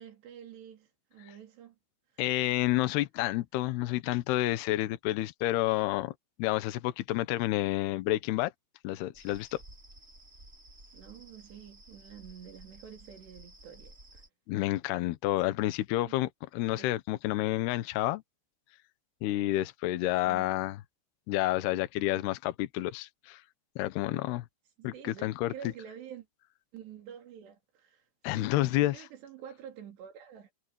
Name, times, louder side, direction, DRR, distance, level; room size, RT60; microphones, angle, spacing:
voice 1, 0.0-1.8 10.9-14.2 15.4-15.5 16.8-16.9 20.3-20.5 24.8-26.3 26.7-28.1 28.3-30.5, right 9 dB, 75° right, 5.3 m, -48 dB
voice 2, 2.2-6.1 6.4-8.5 8.8-9.6 14.5-18.2 19.2-20.8 21.3-23.4 23.8-24.5 24.8-24.9 25.2-25.5 28.2-29.0, left 16 dB, 75° left, 2.9 m, -29 dB
sound 1, 9.1-14.3, right 1 dB, 15° right, 5.9 m, -54 dB
omnidirectional pair, 4.9 m